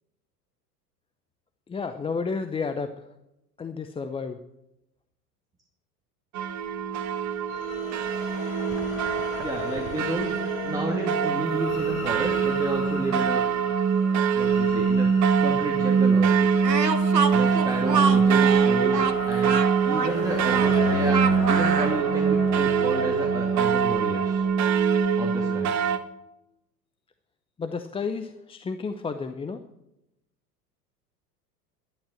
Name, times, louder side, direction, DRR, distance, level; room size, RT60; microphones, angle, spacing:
voice 1, 1.7-3.0 3.6-4.4 27.6-29.6, left 5 dB, 10° left, 9 dB, 0.6 m, -31 dB
sound 1, 6.3-26.0, right 6 dB, 35° right, 1.3 m, -23 dB
sound 2, 7.5-24.5, left 3 dB, 65° left, 4.7 m, -36 dB
voice 2, 9.4-10.3 10.6-13.4 14.3-15.1 15.4-16.5 17.3-19.6 19.8-24.4 25.2-25.7, right 2 dB, 5° right, -1 dB, 2.2 m, -31 dB
Speech, 16.6-22.0, right 6 dB, 85° right, 1.2 m, -27 dB
11.5 x 11.0 x 7.6 m, 0.88 s
figure-of-eight pair, 85°, 48 cm